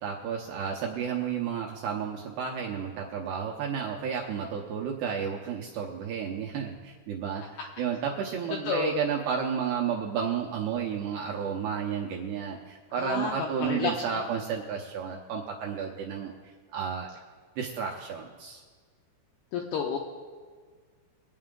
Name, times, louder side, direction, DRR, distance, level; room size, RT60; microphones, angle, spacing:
voice 1, 0.0-17.1 17.6-18.6, right 7 dB, 75° right, -1 dB, 2.5 m, -32 dB
voice 2, 13.0-13.3 13.6-14.2 19.5-20.0, left 6 dB, 80° left, 0 dB, 2.3 m, -30 dB
24.0 x 8.8 x 3.7 m, 1.5 s
omnidirectional pair, 5.8 m